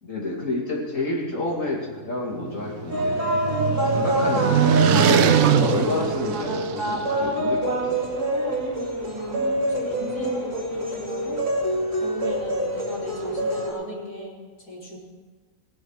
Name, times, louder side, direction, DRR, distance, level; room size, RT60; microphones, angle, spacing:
voice 1, 0.0-3.1 3.6-8.2, left 2 dB, 55° left, -3 dB, 3.2 m, -29 dB
sound 1, 2.3-7.1, right 9 dB, 70° right, 1.0 m, -22 dB
sound 2, 2.9-13.7, right 1 dB, 90° right, 3.4 m, -26 dB
voice 2, 9.1-11.4 12.0-15.0, equal, 80° left, -7 dB, 3.9 m, -37 dB
18.5 x 7.2 x 6.5 m, 1.4 s
omnidirectional pair, 1.6 m